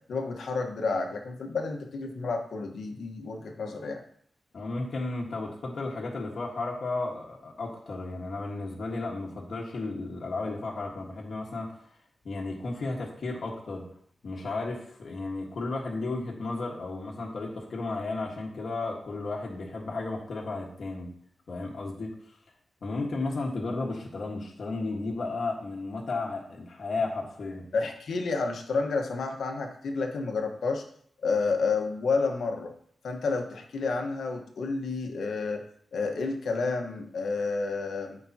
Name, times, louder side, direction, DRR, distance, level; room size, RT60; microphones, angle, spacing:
voice 1, 0.1-4.0 27.7-30.8 31.2-32.7 33.0-35.6 35.9-38.2, left 4 dB, 75° left, 3 dB, 1.3 m, -30 dB
voice 2, 4.5-11.8 12.2-13.8 14.2-21.1 21.5-22.4 22.8-27.6, left 3 dB, 55° left, -2 dB, 1.5 m, -33 dB
13.5 x 5.3 x 2.9 m, 0.63 s
wide cardioid pair, 150°, 0 cm